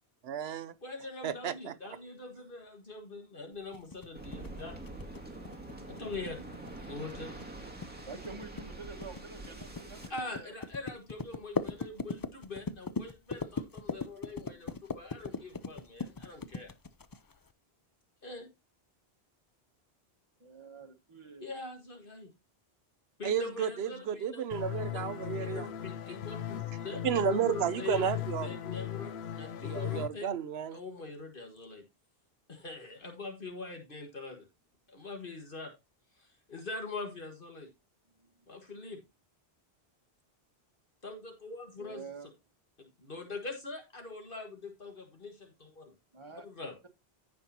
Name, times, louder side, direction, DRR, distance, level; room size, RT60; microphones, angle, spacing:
voice 1, 0.2-0.7 1.2-1.7 23.2-25.7 27.0-28.5 29.6-30.8, right 8 dB, 75° right, 0.9 m, -32 dB
voice 2, 0.8-4.8 5.9-6.5 6.9-7.4 10.1-16.7 18.2-18.5 21.4-22.3 23.2-24.5 24.8-25.1 25.4-28.0 28.4-30.3 30.7-31.8 32.5-34.5 34.9-35.7 36.2-37.7 38.5-39.0 41.0-42.0 42.8-45.9 46.4-46.7, left 3 dB, 55° left, 1.8 m, -43 dB
sound 1, 3.7-17.5, left 4 dB, 35° left, 0.3 m, -39 dB
Waves surf, 4.1-10.1, right 2 dB, 10° right, 2.0 m, -45 dB
voice 3, 8.1-10.5 20.4-21.5 38.2-38.3 41.8-42.3 46.1-46.9, right 4 dB, 25° right, 1.6 m, -48 dB
sound 2, 24.5-30.1, left 11 dB, 75° left, 0.9 m, -38 dB
15.0 x 5.3 x 2.8 m
omnidirectional pair, 1.1 m